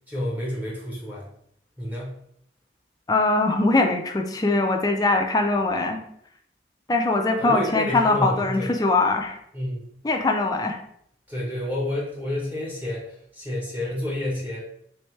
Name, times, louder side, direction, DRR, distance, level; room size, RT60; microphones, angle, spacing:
voice 1, 0.1-1.3 1.8-2.2 7.4-8.7 9.5-9.9 11.3-14.6, left 1 dB, 10° right, -5 dB, 1.0 m, -29 dB
voice 2, 3.1-6.0 6.9-9.4 10.0-10.8, left 2 dB, 20° left, 3 dB, 0.4 m, -22 dB
3.5 x 3.2 x 3.1 m, 0.69 s
head